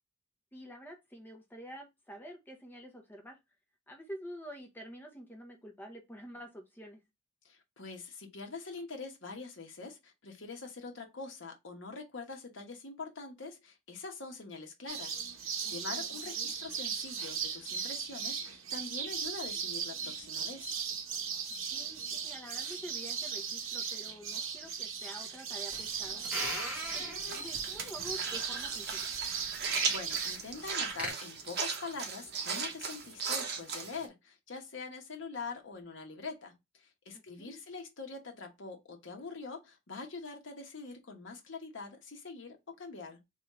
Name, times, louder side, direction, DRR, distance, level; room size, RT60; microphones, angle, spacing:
voice 1, 0.5-3.4 3.9-7.0 15.6-16.5 21.7-26.3 26.9-29.1 37.4-37.6, equal, 10° left, 0.7 m, -48 dB
voice 2, 7.4-20.7 29.9-43.2, left 4 dB, 60° left, 1.0 m, -44 dB
sound 1, 14.9-30.4, right 6 dB, 75° right, 0.8 m, -37 dB
sound 2, 25.7-31.1, equal, 5° right, 1.5 m, -42 dB
sound 3, 27.2-34.1, right 5 dB, 55° right, 0.9 m, -37 dB
3.6 x 3.0 x 3.0 m
head